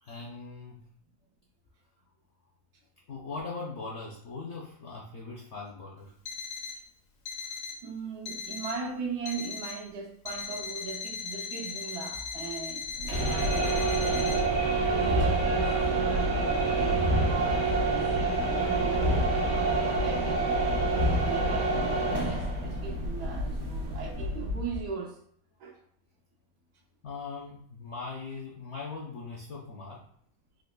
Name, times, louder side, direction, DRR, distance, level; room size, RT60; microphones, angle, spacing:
voice 1, 0.0-0.9 3.1-6.1 27.0-30.1, left 4 dB, 60° left, 0.7 m, -40 dB
Alarm, 6.2-6.8 7.2-7.8 8.2-8.8 9.2-9.8 10.2-14.4, left 5 dB, 80° left, 1.2 m, -38 dB
voice 2, 7.8-14.4 14.9-20.5 21.2-25.2 25.6-25.8, right 5 dB, 80° right, 1.3 m, -39 dB
sound 1, 13.0-24.9, right 2 dB, 55° right, 1.0 m, -27 dB
3.9 x 3.0 x 2.2 m
omnidirectional pair, 1.7 m